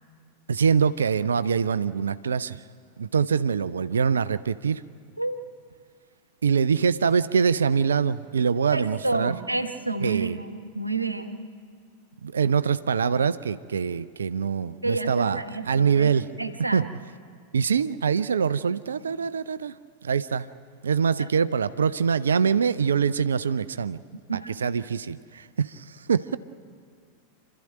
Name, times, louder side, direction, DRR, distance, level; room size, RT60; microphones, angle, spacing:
voice 1, 0.5-2.6 3.0-4.8 6.4-9.4 10.0-10.4 12.2-16.3 16.7-16.8 17.5-19.7 20.0-20.5 20.8-24.0 24.6-26.4, right 6 dB, 70° right, 15 dB, 0.5 m, -24 dB
voice 2, 8.7-11.4 14.8-16.1 16.4-16.9 24.3-24.5, right 3 dB, 85° right, 9 dB, 1.1 m, -29 dB
27.5 x 13.0 x 9.0 m, 2.1 s
figure-of-eight pair, 90°, 0 cm